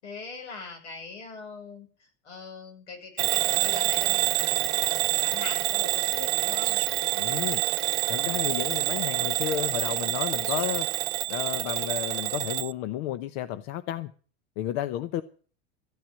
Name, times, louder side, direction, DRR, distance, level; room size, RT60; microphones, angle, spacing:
voice 1, 0.0-6.8, left 4 dB, 90° left, 6.4 m, -42 dB
Bell / Alarm, 3.2-12.7, right 20 dB, 65° right, 0.8 m, -27 dB
sound 1, 6.6-7.1 8.0-8.1 8.4-10.8 11.6-12.1, right 14 dB, 40° right, 1.0 m, -42 dB
voice 2, 7.2-7.6 8.1-10.9 11.3-14.1 14.6-15.2, left 12 dB, 65° left, 0.9 m, -32 dB
14.5 x 8.8 x 7.5 m
hypercardioid pair, 100°, 34 cm